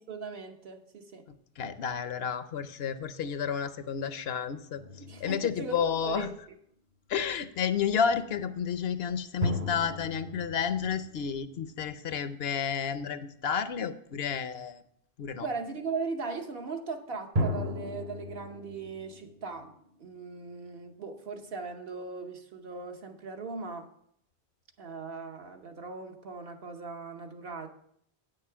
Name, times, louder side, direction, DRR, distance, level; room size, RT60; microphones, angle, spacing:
voice 1, 0.0-1.3 5.1-6.3 15.4-19.7 20.0-23.9 24.8-27.7, right 4 dB, 65° right, 4 dB, 1.2 m, -38 dB
voice 2, 1.3-4.8 5.2-6.3 7.1-14.8 15.2-15.5, left 7 dB, 75° left, 12 dB, 0.9 m, -31 dB
sound 1, 4.8-6.4 9.4-12.1 17.3-20.3, equal, 40° right, 0.8 m, -36 dB
9.1 x 6.8 x 5.7 m, 0.71 s
omnidirectional pair, 1.0 m